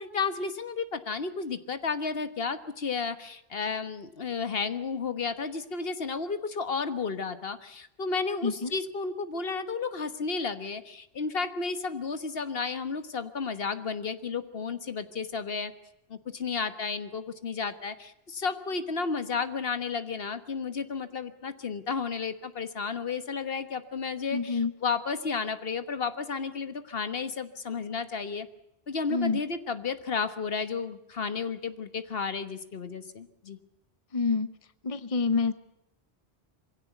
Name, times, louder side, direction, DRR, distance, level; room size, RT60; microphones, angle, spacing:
voice 1, 0.0-15.7 16.1-28.5 28.9-33.6, left 5 dB, 60° left, 11 dB, 1.5 m, -32 dB
voice 2, 8.4-8.7 24.3-24.7 29.1-29.4 34.1-34.5 34.8-35.5, left 4 dB, 35° left, 13 dB, 1.0 m, -27 dB
23.0 x 16.5 x 8.1 m, 0.84 s
omnidirectional pair, 1.1 m